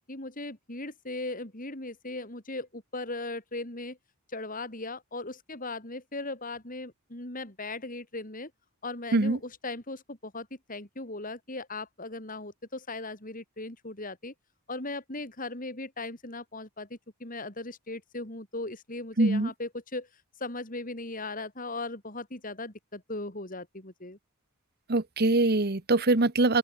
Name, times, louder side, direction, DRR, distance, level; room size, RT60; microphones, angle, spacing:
voice 1, 0.0-4.0 4.3-8.5 8.8-14.3 14.7-16.9 17.2-20.1 20.4-24.2, left 2 dB, 40° left, 4.0 m, -38 dB
voice 2, 19.2-19.5 24.9-26.6, right 2 dB, 45° right, 1.2 m, -23 dB
open air
head